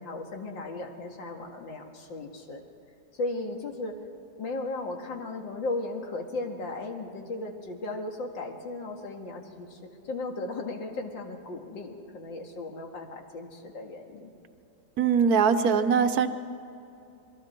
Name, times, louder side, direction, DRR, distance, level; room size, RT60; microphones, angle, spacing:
voice 1, 0.0-2.6 3.1-4.0 4.4-9.8 10.1-14.3, left 2 dB, 85° left, 2 dB, 2.6 m, -36 dB
voice 2, 15.0-16.3, right 6 dB, 65° right, 9 dB, 1.2 m, -22 dB
27.5 x 22.0 x 4.5 m, 2.8 s
omnidirectional pair, 2.0 m